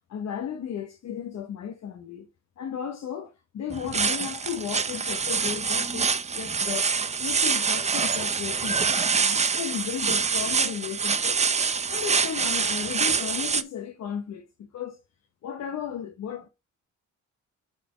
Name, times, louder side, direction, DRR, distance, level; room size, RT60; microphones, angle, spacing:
voice 1, 0.1-2.3 2.6-11.4 11.9-15.0 15.4-16.5, left 8 dB, 60° left, 1.0 m, -35 dB
sound 1, 3.7-13.6, right 5 dB, 25° right, 0.6 m, -26 dB
8.2 x 4.1 x 5.0 m
cardioid pair, 90°, 30 cm